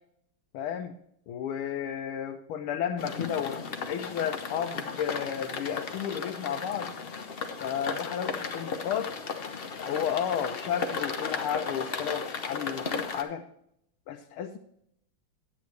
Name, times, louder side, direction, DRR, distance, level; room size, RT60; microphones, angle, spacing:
voice 1, 0.5-1.0 1.3-6.9 7.6-9.1 9.9-13.4 14.1-14.6, left 8 dB, 85° left, 4 dB, 1.6 m, -32 dB
sound 1, 3.0-13.2, left 5 dB, 65° left, 0.5 m, -35 dB
10.5 x 8.6 x 3.3 m, 0.73 s
omnidirectional pair, 2.3 m